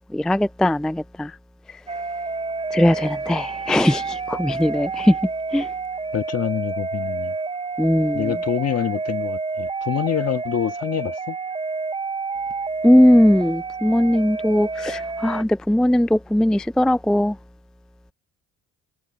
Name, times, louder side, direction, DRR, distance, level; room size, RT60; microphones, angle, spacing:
voice 1, 0.1-1.3 2.7-5.2 5.5-5.7 7.8-8.3 12.8-17.4, left 1 dB, ahead, 0.3 m, -19 dB
sound 1, 1.9-15.4, right 4 dB, 20° right, 0.7 m, -29 dB
voice 2, 6.1-7.4 8.1-11.4, left 9 dB, 55° left, 1.7 m, -26 dB
cardioid pair, 90°, 30 cm